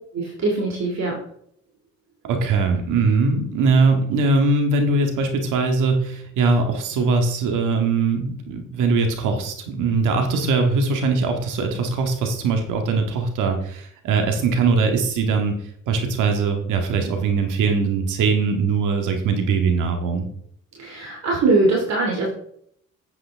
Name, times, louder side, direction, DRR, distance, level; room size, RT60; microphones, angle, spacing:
voice 1, 0.1-1.2 20.8-22.3, right 3 dB, 60° right, -1 dB, 2.7 m, -21 dB
voice 2, 2.2-20.3, right 4 dB, 90° right, 4 dB, 1.9 m, -21 dB
9.0 x 8.1 x 3.6 m, 0.67 s
cardioid pair, 90°, 30 cm